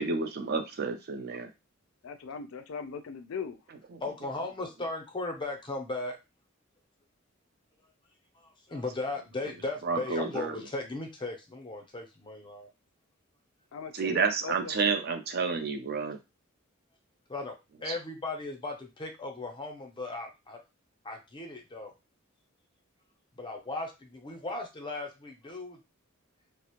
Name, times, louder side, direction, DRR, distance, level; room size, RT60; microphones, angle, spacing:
voice 1, 0.0-1.5 3.9-4.0 9.8-10.6 13.9-16.2 17.9-18.0, right 5 dB, 50° right, 6 dB, 0.4 m, -30 dB
voice 2, 2.0-3.6 13.7-15.0, left 5 dB, 85° left, 8 dB, 0.4 m, -40 dB
voice 3, 4.0-6.2 8.4-12.7 17.3-17.5 17.8-20.6 21.0-21.9 23.4-25.8, left 2 dB, 25° left, 2 dB, 0.5 m, -37 dB
2.4 x 2.0 x 2.8 m, 0.25 s
head